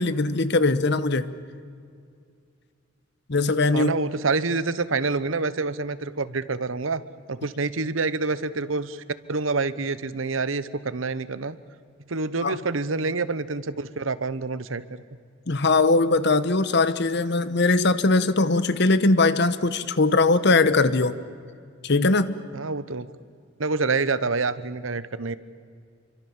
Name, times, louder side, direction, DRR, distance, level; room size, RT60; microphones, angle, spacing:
voice 1, 0.0-1.4 3.3-3.9 12.4-12.6 15.5-21.2 21.8-22.4, left 3 dB, 60° left, 14 dB, 1.1 m, -21 dB
voice 2, 3.7-7.0 7.3-9.0 9.3-11.6 12.1-15.0 22.5-23.1 23.6-25.4, right 3 dB, 85° right, 15 dB, 1.0 m, -27 dB
27.5 x 24.5 x 7.3 m, 2.2 s
head